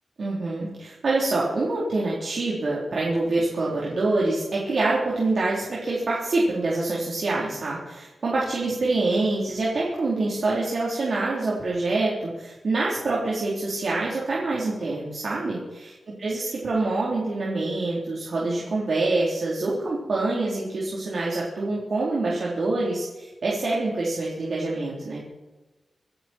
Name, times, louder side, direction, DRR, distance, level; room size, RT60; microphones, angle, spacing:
voice 1, 0.2-15.9 16.2-25.2, right 2 dB, 60° right, -5 dB, 3.9 m, -26 dB
26.0 x 11.0 x 4.6 m, 1.1 s
wide cardioid pair, 160°, 0 cm